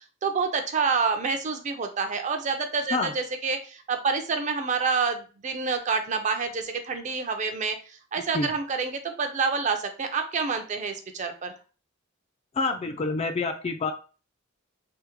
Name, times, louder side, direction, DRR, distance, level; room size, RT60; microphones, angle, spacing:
voice 1, 0.2-11.5, right 5 dB, 35° right, 6 dB, 0.4 m, -28 dB
voice 2, 12.6-13.9, left 3 dB, 30° left, 6 dB, 0.3 m, -27 dB
3.4 x 2.1 x 2.9 m, 0.35 s
head